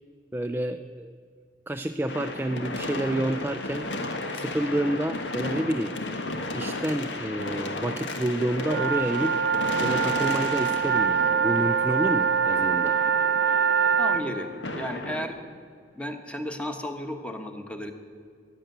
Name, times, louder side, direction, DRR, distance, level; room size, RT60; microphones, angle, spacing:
voice 1, 0.3-1.2 1.7-3.9 4.3-6.0 6.5-9.4 9.8-12.9, right 1 dB, 10° right, 7 dB, 0.3 m, -29 dB
sound 1, 2.1-15.3, left 2 dB, 85° left, 1.5 m, -34 dB
sound 2, 8.6-14.2, right 6 dB, 85° right, 0.7 m, -24 dB
voice 2, 14.0-14.5 14.7-15.4 15.9-17.9, equal, 5° left, 5 dB, 1.2 m, -33 dB
15.0 x 10.5 x 7.9 m, 2.2 s
head